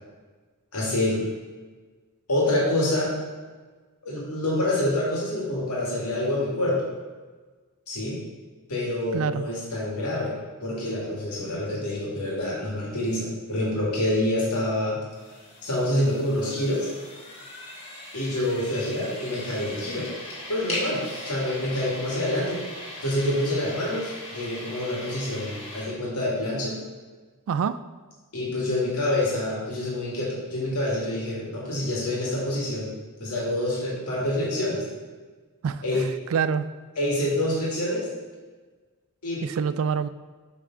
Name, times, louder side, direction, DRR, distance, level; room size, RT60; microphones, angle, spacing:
voice 1, 0.7-1.2 2.3-3.1 4.0-6.8 7.9-8.2 8.7-15.0 15.6-16.9 18.1-20.1 20.5-21.0 21.3-22.6 23.0-26.8 28.3-32.9 33.2-34.8 35.8-36.1 37.0-38.1 39.2-39.4, left 1 dB, 90° left, -5 dB, 2.0 m, -27 dB
voice 2, 9.1-9.5 27.5-27.8 35.6-36.0 36.3-36.7 39.4-40.1, right 6 dB, 65° right, 14 dB, 0.3 m, -26 dB
sound 1, 15.1-25.8, left 1 dB, 30° left, 1.8 m, -39 dB
7.5 x 3.7 x 4.6 m, 1.4 s
head